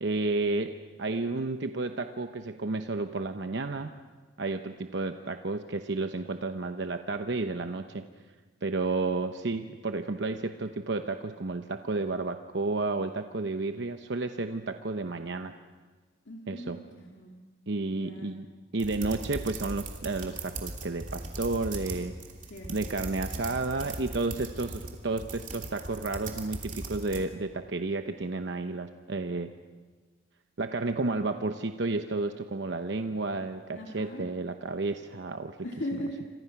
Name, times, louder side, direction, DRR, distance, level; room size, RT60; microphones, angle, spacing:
voice 1, 0.0-3.9 4.4-8.1 8.6-15.5 16.5-16.8 17.7-22.2 22.7-29.5 30.6-35.6, right 3 dB, 70° right, 7 dB, 0.9 m, -32 dB
voice 2, 16.3-17.4 17.9-18.3 22.4-22.7 23.0-23.5 33.7-34.3 35.6-36.3, equal, 85° left, -1 dB, 2.5 m, -39 dB
sound 1, 18.8-27.2, right 2 dB, 40° right, 2.9 m, -39 dB
28.5 x 26.0 x 5.9 m, 1.3 s
head